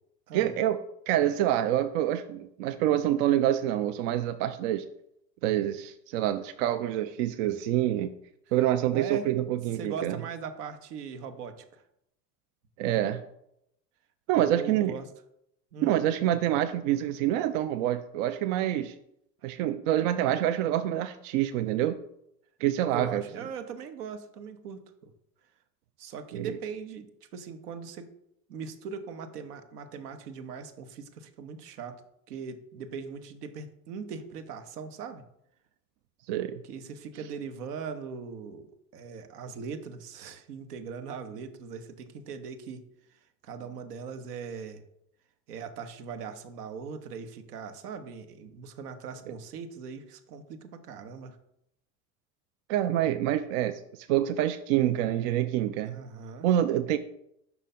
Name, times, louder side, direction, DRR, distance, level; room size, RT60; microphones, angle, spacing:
voice 1, 0.3-4.8 5.4-8.1 8.5-10.2 12.8-13.2 14.3-14.9 15.8-19.0 19.4-22.0 22.6-23.2 26.3-26.5 36.3-36.6 52.7-56.0 56.4-57.0, right 12 dB, 55° right, 9 dB, 0.5 m, -27 dB
voice 2, 8.9-9.3 9.7-11.8 14.3-15.1 15.7-16.0 22.9-25.1 26.0-28.1 28.5-32.0 32.3-35.2 36.6-38.7 38.9-42.8 43.4-44.8 45.5-51.4 55.8-56.5, right 6 dB, 70° right, 9 dB, 0.9 m, -40 dB
5.6 x 4.9 x 4.1 m, 0.78 s
figure-of-eight pair, 70°, 48 cm